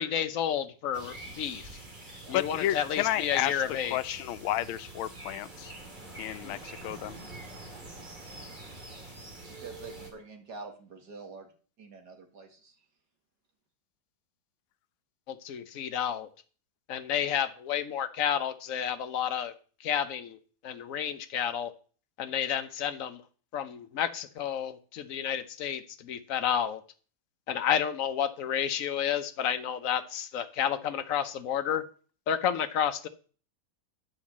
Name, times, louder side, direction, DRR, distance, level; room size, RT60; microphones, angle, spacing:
voice 1, 0.0-1.6 2.3-4.2 15.3-16.3 16.9-19.5 19.8-20.4 20.6-21.7 22.2-23.2 23.5-26.8 27.5-31.8 32.3-33.1, left 9 dB, 60° left, 10 dB, 0.9 m, -31 dB
sound 1, 0.9-10.1, right 2 dB, 25° right, 2.0 m, -46 dB
voice 2, 2.3-3.6 3.9-5.7 6.2-7.2, left 13 dB, 90° left, 14 dB, 1.4 m, -31 dB
voice 3, 9.6-11.5 11.8-12.9, right 3 dB, 55° right, 4 dB, 2.3 m, -46 dB
9.8 x 5.1 x 7.2 m, 0.40 s
omnidirectional pair, 2.2 m